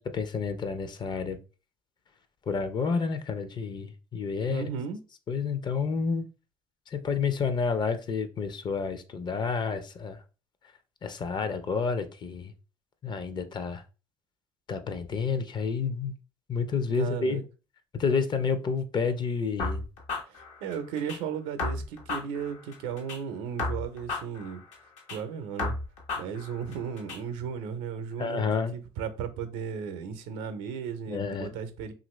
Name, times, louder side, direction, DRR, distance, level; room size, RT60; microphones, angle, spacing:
voice 1, 0.0-1.4 2.5-4.7 5.3-6.3 6.9-10.2 11.0-12.5 13.0-13.8 14.7-16.1 16.5-17.4 17.9-19.8 28.2-28.7 31.1-31.5, left 5 dB, 40° left, 0.5 m, -29 dB
voice 2, 4.5-5.0 17.0-17.4 20.3-24.6 25.1-25.8 26.2-28.5 28.7-31.9, right 7 dB, 85° right, 0.6 m, -35 dB
sound 1, 19.6-21.2 21.6-23.2 23.6-25.2 25.6-27.2, left 3 dB, 75° left, 1.0 m, -34 dB
2.9 x 2.5 x 3.1 m
supercardioid pair, 75°, 12 cm